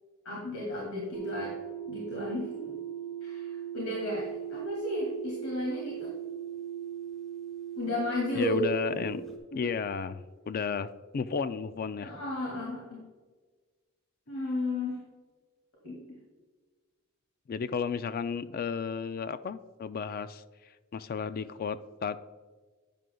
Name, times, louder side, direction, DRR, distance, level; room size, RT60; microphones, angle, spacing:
voice 1, 0.2-1.5 1.9-2.8 3.2-6.1 7.8-8.6 8.9-9.0 9.5-9.6 12.0-13.0 14.3-15.0 15.8-16.2, left 2 dB, 80° left, -4 dB, 2.3 m, -34 dB
sound 1, 1.1-9.4, right 10 dB, ahead, 1.4 m, -39 dB
voice 2, 8.4-9.2 9.5-12.1 17.5-20.4 20.9-22.2, left 6 dB, 45° left, 14 dB, 0.3 m, -33 dB
11.0 x 9.1 x 2.3 m, 1.4 s
head